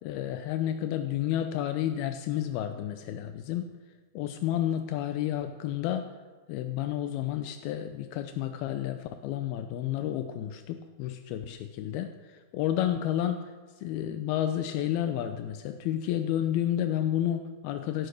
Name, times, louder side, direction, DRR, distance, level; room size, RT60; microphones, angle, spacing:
voice 1, 0.0-3.7 4.1-6.1 6.5-18.1, left 11 dB, 80° left, 8 dB, 2.6 m, -31 dB
16.0 x 12.0 x 6.5 m, 1.4 s
omnidirectional pair, 4.5 m